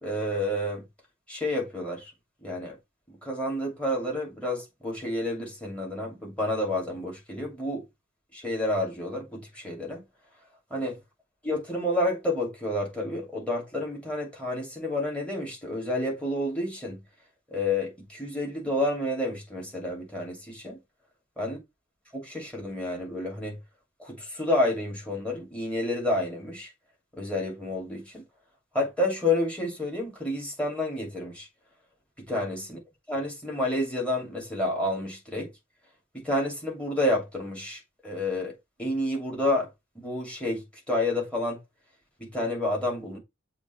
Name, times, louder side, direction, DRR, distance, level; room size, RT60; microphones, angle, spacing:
voice 1, 0.0-0.8 1.3-2.1 2.4-2.8 3.1-7.9 8.3-10.0 10.7-11.0 11.4-17.0 17.5-20.8 21.4-21.6 22.1-23.6 24.0-26.7 27.1-28.2 28.7-31.5 32.2-32.8 33.1-35.5 36.1-39.7 39.9-41.6 42.2-43.2, left 1 dB, 5° left, 2.6 m, -30 dB
7.1 x 3.1 x 4.4 m
head